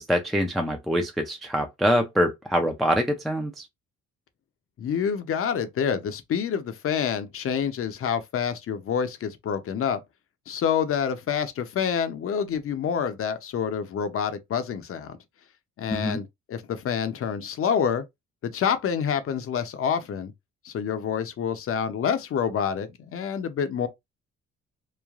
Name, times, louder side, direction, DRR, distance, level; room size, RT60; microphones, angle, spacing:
voice 1, 0.0-3.7 15.9-16.2, equal, ahead, 0.4 m, -25 dB
voice 2, 4.8-10.0 10.5-15.2 15.8-18.0 18.4-20.3 20.6-23.9, left 7 dB, 45° left, 0.6 m, -27 dB
3.1 x 2.1 x 2.4 m
cardioid pair, 90°, 30 cm